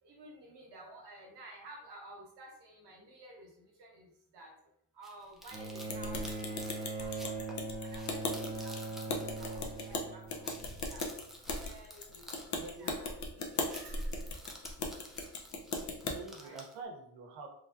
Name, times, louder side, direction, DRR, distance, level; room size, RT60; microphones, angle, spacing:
voice 1, 0.0-4.5 4.9-7.5 7.8-11.0 11.5-13.4 13.7-14.3 16.4-16.6, right 1 dB, 55° right, 0 dB, 1.2 m, -53 dB
sound 1, 5.0-10.0 10.3-13.2 13.4-16.7, equal, ahead, 0.3 m, -52 dB
Bowed string instrument, 5.5-11.0 12.1-12.2, right 3 dB, 20° right, 0.7 m, -41 dB
sound 2, 5.9-16.2, left 3 dB, 35° left, 0.6 m, -38 dB
voice 2, 12.6-13.1 16.0-17.5, right 4 dB, 70° right, 1 dB, 0.9 m, -46 dB
3.1 x 2.3 x 2.6 m, 0.71 s
supercardioid pair, 80°, 49 cm